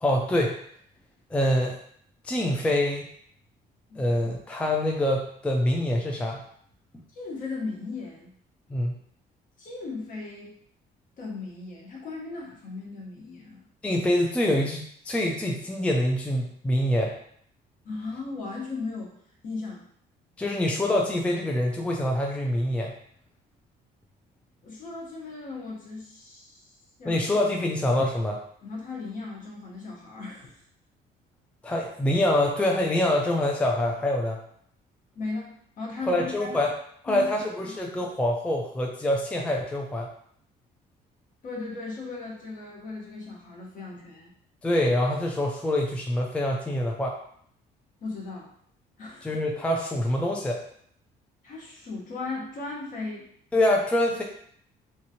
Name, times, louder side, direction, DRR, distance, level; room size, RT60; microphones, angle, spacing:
voice 1, 0.0-0.6 1.3-1.8 2.2-3.1 4.0-6.4 8.7-9.0 13.8-17.2 20.4-22.9 27.0-28.4 31.6-34.4 36.0-36.7 37.0-40.1 44.6-47.2 49.2-50.6 53.5-54.2, left 1 dB, 5° left, 0 dB, 0.4 m, -25 dB
voice 2, 7.1-8.3 9.6-10.5 11.2-13.6 17.8-19.2 19.4-19.8 24.6-26.7 27.0-27.2 28.6-30.5 35.1-36.6 37.1-37.8 41.4-44.3 48.0-48.5 49.0-49.4 51.4-53.3, left 3 dB, 55° left, -2 dB, 1.0 m, -37 dB
2.8 x 2.6 x 2.8 m, 0.65 s
cardioid pair, 110°, 17 cm